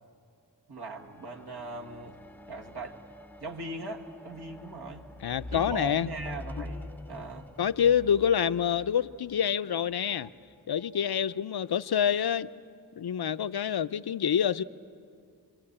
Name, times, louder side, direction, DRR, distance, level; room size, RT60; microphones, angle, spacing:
voice 1, 0.7-2.2 2.5-3.0 3.4-5.1 5.5-7.5, right 3 dB, 85° right, 0 dB, 2.2 m, -40 dB
sound 1, 0.8-10.3 11.1-11.2, left 1 dB, 5° left, 0.6 m, -45 dB
voice 2, 5.2-6.1 7.6-10.3 10.7-12.5 13.0-14.6, left 8 dB, 75° left, 14 dB, 0.6 m, -27 dB
26.5 x 21.5 x 8.7 m, 2.4 s
wide cardioid pair, 55°, 38 cm